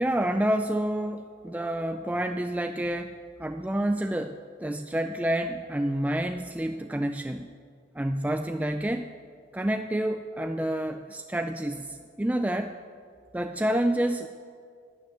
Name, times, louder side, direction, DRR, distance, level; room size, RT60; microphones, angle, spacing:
voice 1, 0.0-3.1 3.4-7.5 7.9-9.1 9.5-12.8 13.3-14.3, right 1 dB, 10° right, 7 dB, 0.3 m, -28 dB
12.5 x 9.7 x 9.7 m, 2.2 s
head